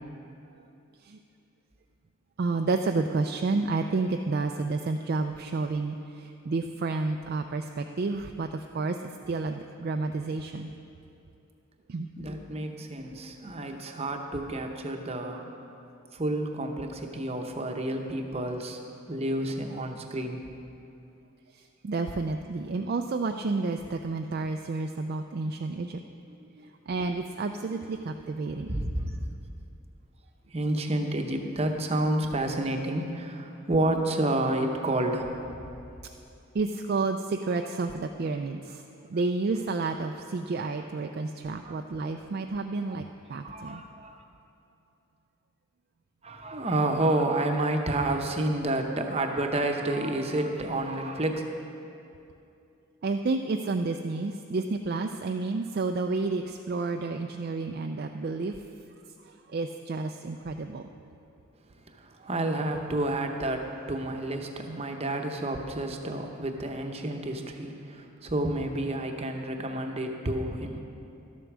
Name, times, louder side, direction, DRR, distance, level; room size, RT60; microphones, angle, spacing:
voice 1, 2.4-10.7 11.9-12.1 21.5-26.0 26.9-28.8 36.5-38.8 39.1-43.0 43.3-43.8 53.0-58.5 59.2-60.9 64.7-64.8, right 3 dB, 45° right, 4 dB, 0.3 m, -30 dB
voice 2, 12.2-15.4 16.1-18.8 19.1-20.4 26.3-26.7 27.7-28.0 28.7-29.1 30.5-35.7 41.6-41.8 42.9-43.0 43.4-44.2 46.2-51.4 61.9-70.8, right 1 dB, 30° right, 4 dB, 0.8 m, -30 dB
12.0 x 8.0 x 6.2 m, 2.7 s
head